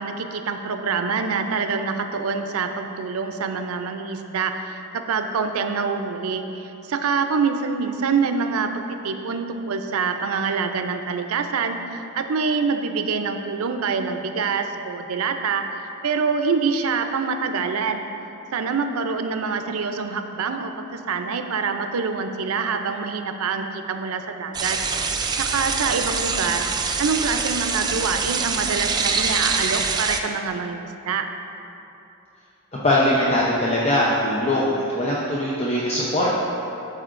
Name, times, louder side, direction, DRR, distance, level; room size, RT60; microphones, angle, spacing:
voice 1, 0.0-18.1 18.5-24.8 25.3-26.7 27.0-31.3, right 5 dB, 90° right, 7 dB, 0.5 m, -25 dB
sound 1, 24.5-30.2, right 5 dB, 20° right, 0.3 m, -24 dB
voice 2, 32.8-36.4, left 1 dB, 30° left, -6 dB, 0.7 m, -21 dB
12.5 x 4.9 x 2.5 m, 2.9 s
head